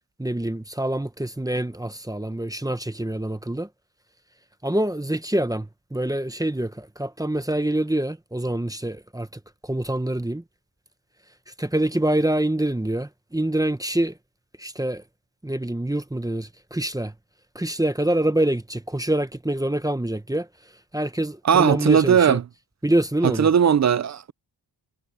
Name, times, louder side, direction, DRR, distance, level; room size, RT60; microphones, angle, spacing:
voice 1, 0.2-3.7 4.6-9.3 9.6-10.4 11.6-14.2 14.6-15.0 15.4-17.1 17.5-20.5 20.9-22.4 22.8-23.5, right 1 dB, 10° right, 0.9 m, -25 dB
voice 2, 21.4-22.4 23.2-24.3, right 8 dB, 40° right, 0.4 m, -18 dB
wide cardioid pair, 145°, 46 cm